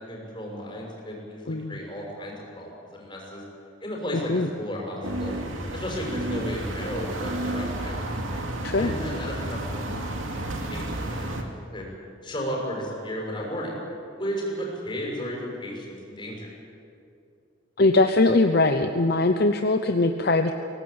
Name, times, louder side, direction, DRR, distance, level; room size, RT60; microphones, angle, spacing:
voice 1, 0.1-3.4 3.8-5.4 5.7-8.0 8.6-11.9 12.2-13.7 14.2-16.5, equal, 25° left, -2 dB, 6.5 m, -34 dB
sound 1, 5.0-11.4, right 1 dB, 85° right, 2.6 m, -31 dB
voice 2, 17.8-20.5, left 2 dB, 55° left, 6 dB, 0.9 m, -21 dB
23.0 x 18.5 x 8.8 m, 2.6 s
head